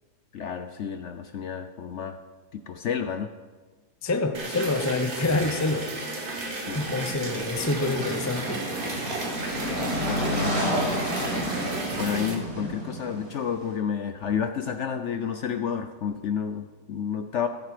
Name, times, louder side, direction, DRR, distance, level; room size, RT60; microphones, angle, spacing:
voice 1, 0.3-2.2 2.5-3.3 6.5-6.9 9.7-11.2 11.5-17.5, left 7 dB, 65° left, 8 dB, 0.7 m, -31 dB
voice 2, 4.0-5.9 6.7-8.6, left 3 dB, 25° left, 7 dB, 0.3 m, -27 dB
sound 1, 4.3-12.4, right 2 dB, 35° right, 1.3 m, -33 dB
sound 2, 6.7-13.7, equal, 60° right, 4.8 m, -31 dB
14.5 x 9.0 x 5.0 m, 1.3 s
omnidirectional pair, 1.8 m